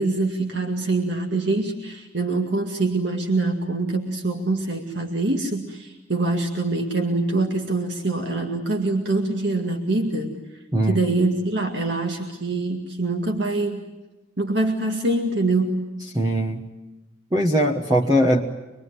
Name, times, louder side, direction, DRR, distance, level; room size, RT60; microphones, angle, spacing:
voice 1, 0.0-10.4 10.9-13.8 14.4-15.9, right 2 dB, 60° right, 3 dB, 2.1 m, -24 dB
voice 2, 10.7-11.0 16.1-16.6 17.3-18.4, equal, 20° right, 1 dB, 1.2 m, -20 dB
25.5 x 22.0 x 9.6 m, 1.1 s
head